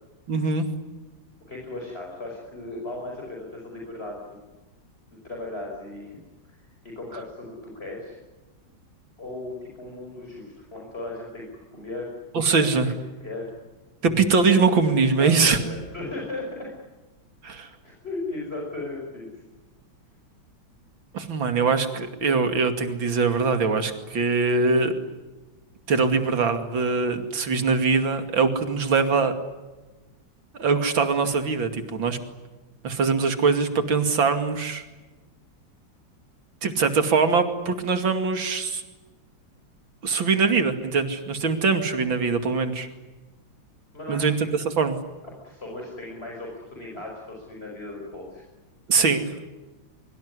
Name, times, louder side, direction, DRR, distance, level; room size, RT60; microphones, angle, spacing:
voice 1, 0.3-0.7 12.3-12.9 14.0-15.6 17.4-17.7 21.1-24.9 25.9-29.3 30.5-32.2 32.8-34.8 36.6-38.8 40.0-42.9 44.1-44.3 44.8-45.0 48.9-49.3, right 4 dB, 75° right, 8 dB, 3.2 m, -22 dB
voice 2, 1.5-4.4 5.1-6.2 6.4-8.2 9.2-12.1 12.6-12.8 13.2-13.5 15.0-16.7 17.8-19.4 41.3-41.6 43.9-44.3 44.6-44.7 45.2-48.4, left 2 dB, 30° left, -1 dB, 5.7 m, -37 dB
24.0 x 24.0 x 9.7 m, 1.2 s
omnidirectional pair, 2.1 m